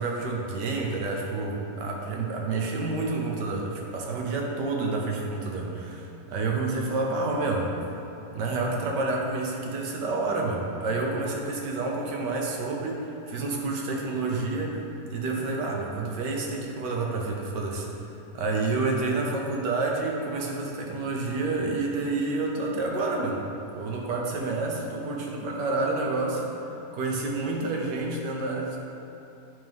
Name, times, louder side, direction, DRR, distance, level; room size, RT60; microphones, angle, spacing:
voice 1, 0.0-7.7 8.3-17.9 18.3-23.4 23.7-26.5 26.9-28.8, right 3 dB, 85° right, 0 dB, 1.6 m, -29 dB
8.5 x 3.7 x 5.3 m, 2.8 s
omnidirectional pair, 1.8 m